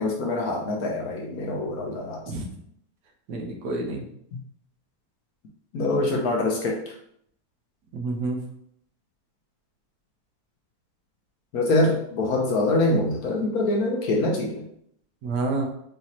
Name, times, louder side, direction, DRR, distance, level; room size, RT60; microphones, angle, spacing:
voice 1, 0.0-2.2 4.3-4.4 5.7-6.8 11.5-14.6, left 2 dB, 65° left, 0 dB, 1.0 m, -24 dB
voice 2, 3.3-4.0 7.9-8.4 15.2-15.7, right 3 dB, 75° right, 2 dB, 1.3 m, -28 dB
5.0 x 2.8 x 2.9 m, 0.69 s
omnidirectional pair, 1.9 m